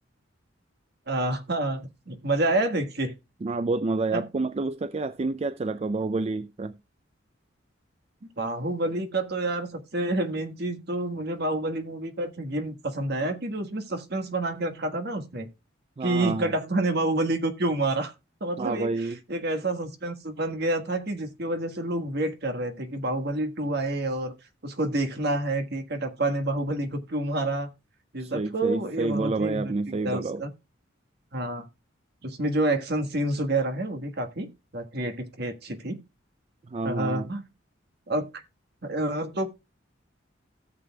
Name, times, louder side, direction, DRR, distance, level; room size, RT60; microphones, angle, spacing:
voice 1, 1.1-3.1 4.1-4.2 8.2-15.5 16.0-18.1 18.4-19.0 19.3-24.3 24.6-27.7 28.1-30.5 31.3-31.7 32.2-34.5 34.7-36.0 36.8-37.4 38.1-38.4 38.8-39.5, right 2 dB, 55° right, 1.5 m, -28 dB
voice 2, 3.4-6.7 16.0-16.5 18.6-19.2 28.2-30.4 36.7-37.3, right 3 dB, 30° right, 0.4 m, -29 dB
17.0 x 6.8 x 2.3 m
head